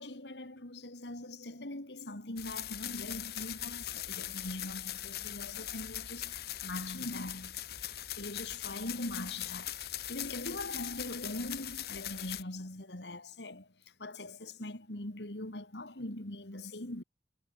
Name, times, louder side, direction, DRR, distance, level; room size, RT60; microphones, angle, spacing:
voice 1, 0.0-7.6 8.2-9.8 10.1-13.7 14.0-17.0, left 1 dB, 80° left, 3.1 m, -42 dB
sound 1, 2.4-12.4, left 12 dB, 60° left, 1.5 m, -41 dB
head